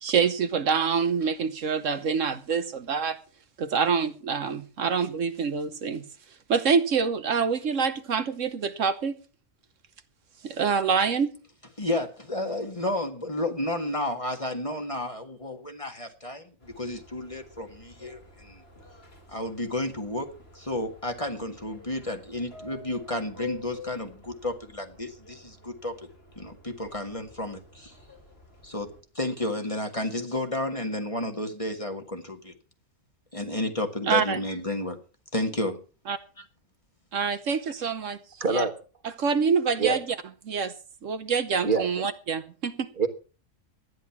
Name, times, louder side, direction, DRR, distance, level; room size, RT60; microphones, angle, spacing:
voice 1, 0.0-3.2 3.6-6.0 6.5-9.2 10.4-11.4 34.0-34.4 36.1-36.2 37.1-38.2 38.5-38.6 39.0-40.2 40.5-40.7 41.0-42.9, right 6 dB, 70° right, 1.3 m, -26 dB
voice 2, 11.8-18.6 19.3-25.9 26.4-27.9 28.6-28.9 29.2-32.5 33.3-35.0 35.3-35.8, left 1 dB, 25° left, 1.9 m, -32 dB
Subway metro underground, 16.6-29.0, left 3 dB, 50° left, 3.8 m, -48 dB
voice 3, 38.4-38.7 39.8-40.0 41.6-42.1 43.0-43.1, right 4 dB, 40° right, 1.6 m, -25 dB
13.0 x 10.5 x 5.9 m
omnidirectional pair, 1.4 m